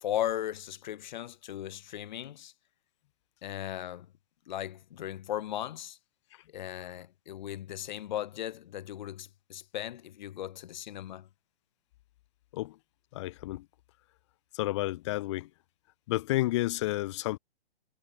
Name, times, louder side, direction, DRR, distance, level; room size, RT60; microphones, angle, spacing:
voice 1, 0.0-2.5 3.4-4.1 4.5-6.0 6.5-11.3, left 12 dB, 50° left, 1.6 m, -37 dB
voice 2, 13.1-13.6 14.5-15.5 16.1-17.4, left 17 dB, 30° left, 0.7 m, -31 dB
hypercardioid pair, 135°, 30 cm